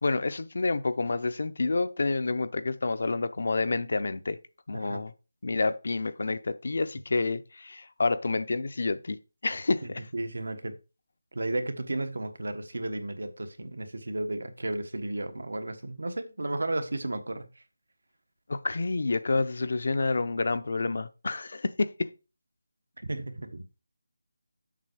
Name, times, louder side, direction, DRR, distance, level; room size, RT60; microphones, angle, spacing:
voice 1, 0.0-4.4 4.7-5.1 5.4-9.2 9.4-10.0 18.5-22.1, left 3 dB, 50° left, 0.5 m, -28 dB
voice 2, 9.8-10.7 11.3-17.5 23.0-23.6, right 2 dB, 80° right, 1.3 m, -33 dB
7.5 x 5.7 x 4.7 m
figure-of-eight pair, 175°, 0 cm